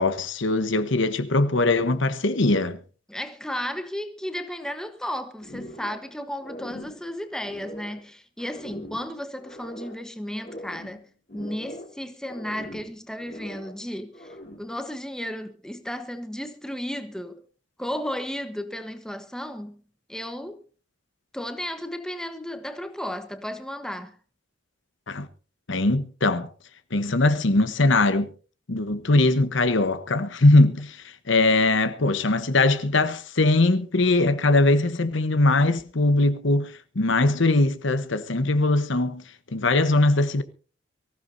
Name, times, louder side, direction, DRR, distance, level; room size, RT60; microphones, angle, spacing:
voice 1, 0.0-2.8 25.1-25.3 25.7-26.5 26.9-28.3 28.7-39.2 39.5-40.4, left 2 dB, 70° left, 1.0 m, -21 dB
voice 2, 3.1-11.1 11.3-17.4 17.8-19.8 20.1-20.6 21.3-24.2, equal, 5° left, 1.0 m, -34 dB
sound 1, 5.4-6.1 6.4-8.0 8.4-10.0 10.4-12.0 12.2-13.8 14.1-14.8, equal, 45° left, 3.6 m, -41 dB
24.0 x 15.0 x 2.7 m
head